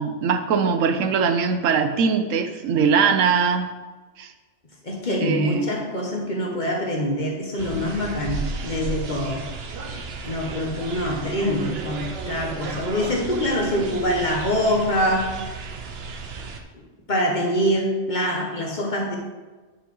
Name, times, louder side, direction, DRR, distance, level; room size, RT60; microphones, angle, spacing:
voice 1, 0.0-3.7 4.2-4.3 5.2-5.7, right 6 dB, 85° right, 7 dB, 1.1 m, -21 dB
voice 2, 4.8-9.4 10.3-15.3 16.7-16.8 17.1-19.2, equal, 40° left, -1 dB, 1.5 m, -24 dB
sound 1, 7.6-16.6, right 4 dB, 60° right, 1.0 m, -34 dB
9.7 x 5.6 x 3.9 m, 1.3 s
omnidirectional pair, 1.3 m